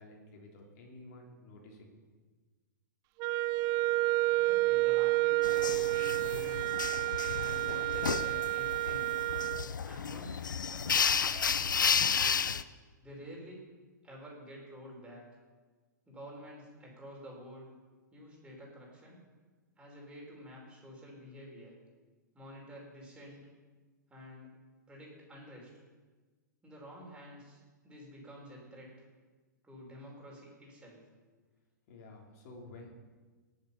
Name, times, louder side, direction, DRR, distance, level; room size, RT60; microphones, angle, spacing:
voice 1, 0.0-2.2 31.9-32.9, left 2 dB, 50° left, 0 dB, 3.5 m, -52 dB
Wind instrument woodwind instrument, 3.2-9.7, right 21 dB, 35° right, 0.4 m, -30 dB
voice 2, 4.2-6.8 7.4-9.1 9.8-12.5 13.0-13.6 14.0-15.2 16.1-17.7 18.1-19.2 19.8-21.8 22.3-23.5 24.1-24.5 24.9-25.7 26.6-29.1 29.6-31.0, equal, 10° right, -3 dB, 5.2 m, -49 dB
sound 1, 5.4-12.6, left 6 dB, 80° left, 0.6 m, -32 dB
18.5 x 7.5 x 5.8 m, 1.4 s
figure-of-eight pair, 110°, 10 cm